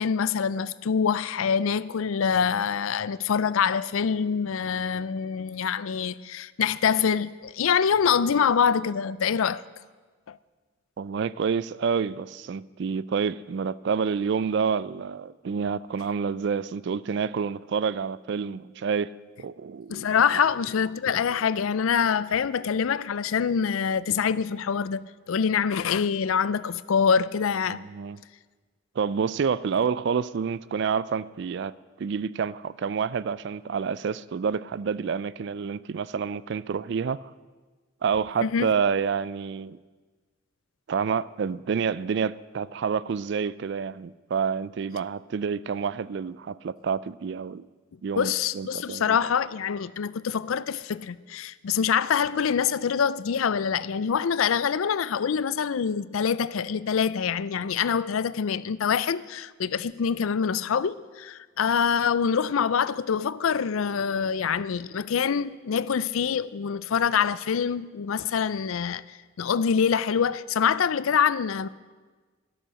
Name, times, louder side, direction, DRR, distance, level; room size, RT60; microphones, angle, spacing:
voice 1, 0.0-9.6 10.3-10.4 19.9-27.8 38.4-38.7 48.2-69.0 69.4-71.7, left 7 dB, 80° left, 0.4 m, -25 dB
voice 2, 11.0-19.1 19.4-20.1 27.7-28.2 29.0-37.2 38.0-39.8 40.9-47.6 48.0-49.2, right 6 dB, 55° right, 0.3 m, -28 dB
12.5 x 12.0 x 6.4 m
head